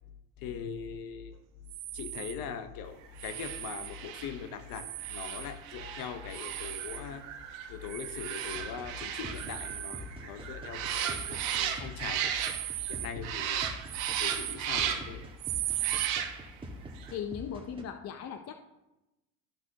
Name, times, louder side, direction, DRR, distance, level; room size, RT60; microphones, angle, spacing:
voice 1, 0.4-1.4 1.9-7.3 7.7-12.3 12.9-13.7 14.2-15.3, left 7 dB, 60° left, 10 dB, 1.0 m, -41 dB
sound 1, 1.7-2.4 3.2-4.0 4.7-5.5 6.3-7.1 7.9-8.6 9.3-10.1 10.9-11.6 12.4-13.2 13.9-14.6 15.4-16.1, right 16 dB, 45° right, 0.4 m, -38 dB
sound 2, 3.2-12.9 13.2-15.2 15.8-16.6 17.0-17.1, right 9 dB, 80° right, 1.1 m, -36 dB
sound 3, 8.5-17.8, equal, 15° right, 1.5 m, -46 dB
voice 2, 17.1-18.6, left 8 dB, 40° left, 7 dB, 0.7 m, -38 dB
13.0 x 6.0 x 2.9 m, 0.98 s
supercardioid pair, 90°, 40 cm